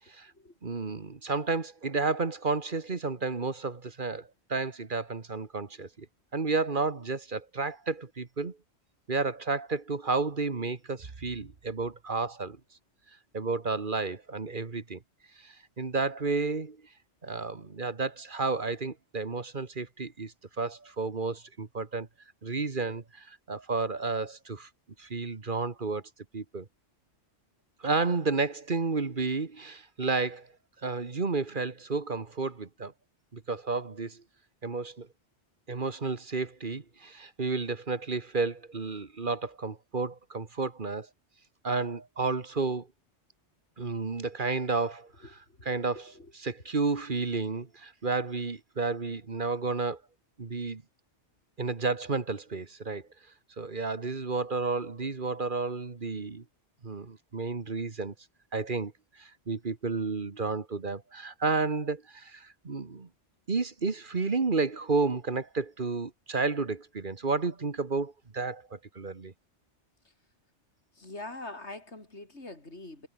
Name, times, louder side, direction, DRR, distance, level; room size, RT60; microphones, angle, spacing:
voice 1, 0.6-6.1 6.3-8.6 9.1-12.6 13.3-15.0 15.4-16.8 17.2-22.1 22.4-24.7 25.0-26.0 26.3-26.7 27.8-30.5 30.8-32.9 33.3-34.2 34.6-35.1 35.7-41.1 41.6-42.9 43.8-45.1 45.7-46.1 46.4-50.0 50.4-50.8 51.6-53.0 53.6-56.4 56.8-58.1 58.5-58.9 59.2-63.1 63.5-69.3, right 4 dB, 45° right, 1.7 m, -31 dB
voice 2, 45.2-46.3 70.0-70.1 70.9-73.1, left 2 dB, 75° left, 5.5 m, -44 dB
omnidirectional pair, 1.2 m